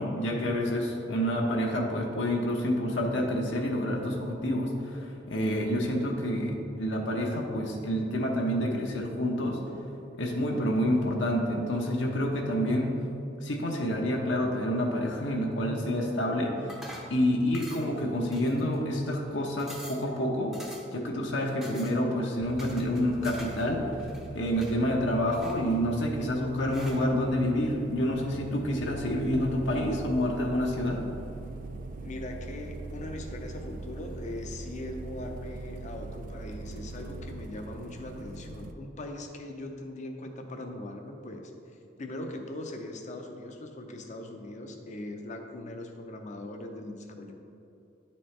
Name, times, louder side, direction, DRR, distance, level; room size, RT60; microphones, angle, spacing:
voice 1, 0.0-9.6 10.1-12.9 13.4-16.8 17.1-20.5 20.9-24.1 24.3-31.0, equal, 70° left, 0 dB, 0.8 m, -28 dB
sound 1, 16.7-17.2 17.5-18.0 18.3-18.9 19.3-19.4 19.6-20.1 20.5-21.0 21.6-22.0 22.6-23.7 23.9-24.8 25.3-26.0 26.7-27.0, equal, 5° right, 0.7 m, -46 dB
sound 2, 22.4-38.7, right 3 dB, 45° right, 0.3 m, -42 dB
voice 2, 32.0-47.3, left 1 dB, 40° left, 4 dB, 0.6 m, -40 dB
10.0 x 4.3 x 3.2 m, 2.8 s
head